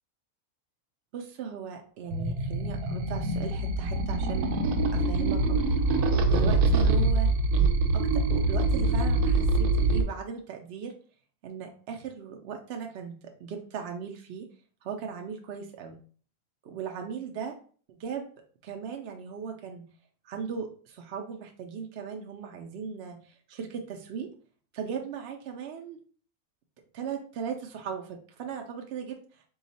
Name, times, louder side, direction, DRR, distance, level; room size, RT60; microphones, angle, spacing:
voice 1, 1.1-4.5 4.9-5.6 5.9-7.3 7.9-10.9 11.4-14.5 14.8-16.0 16.6-17.6 17.9-18.3 18.6-19.9 20.2-24.3 24.7-26.0 26.9-29.4, right 6 dB, 70° right, 2 dB, 0.6 m, -37 dB
sound 1, 2.1-10.0, right 2 dB, 85° right, 1.1 m, -24 dB
3.8 x 2.3 x 4.1 m, 0.44 s
omnidirectional pair, 1.6 m